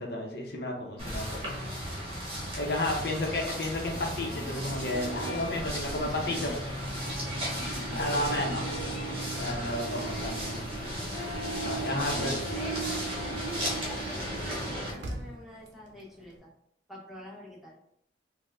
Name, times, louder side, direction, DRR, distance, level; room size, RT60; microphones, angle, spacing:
voice 1, 0.0-1.5 2.6-6.5 7.7-8.7 9.4-10.6 11.6-12.3, left 1 dB, 60° left, 0 dB, 0.6 m, -32 dB
washington potomac walking, 1.0-14.9, equal, 30° right, 1.0 m, -35 dB
sound 1, 1.2-16.4, right 1 dB, 75° right, 0.6 m, -46 dB
voice 2, 1.5-2.0 6.0-6.6 7.6-8.0 10.1-10.4 11.9-16.5 16.9-17.8, left 1 dB, ahead, -4 dB, 0.5 m, -45 dB
Harp, 4.2-15.3, right 3 dB, 25° left, 0.8 m, -40 dB
4.3 x 2.1 x 2.4 m, 0.70 s
head